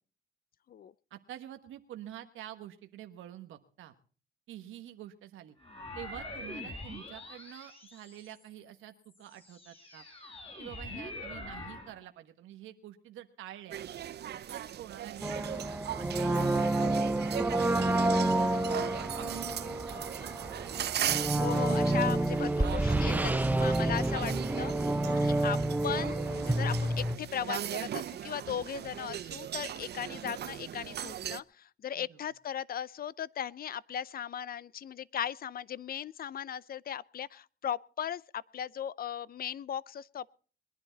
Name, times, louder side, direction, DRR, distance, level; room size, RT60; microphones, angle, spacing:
voice 1, 1.1-3.9 4.5-5.6 5.9-10.1 10.6-13.9 14.5-15.4 16.0-16.4 17.4-19.6 32.0-32.2, right 12 dB, 85° right, 1.3 m, -47 dB
sound 1, 5.6-8.5 9.1-12.0, left 2 dB, 30° left, 5.0 m, -44 dB
sound 2, 13.7-31.4, right 10 dB, 55° right, 0.7 m, -38 dB
sound 3, 15.2-27.2, right 1 dB, 10° right, 0.7 m, -29 dB
voice 2, 21.4-25.6 25.8-40.3, left 9 dB, 50° left, 0.6 m, -37 dB
22.0 x 10.5 x 4.0 m
cardioid pair, 90°, 20 cm